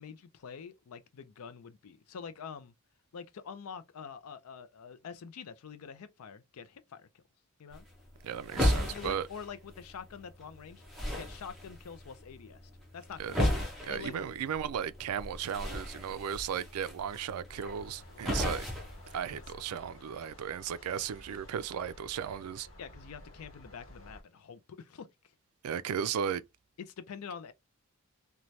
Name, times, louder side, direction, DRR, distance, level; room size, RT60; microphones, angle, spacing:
voice 1, 0.0-2.7 3.1-7.2 7.6-7.9 8.7-12.6 12.9-13.5 13.8-14.3 19.3-19.4 21.3-21.5 22.8-25.1 26.8-27.5, left 6 dB, 80° left, 0.4 m, -46 dB
sound 1, 7.7-19.7, equal, ahead, 0.7 m, -36 dB
voice 2, 8.2-9.3 13.2-13.4 13.8-18.7 19.1-22.7 25.6-26.4, right 8 dB, 85° right, 0.3 m, -35 dB
sound 2, 17.5-24.2, left 1 dB, 60° left, 1.0 m, -53 dB
3.1 x 2.2 x 2.6 m
head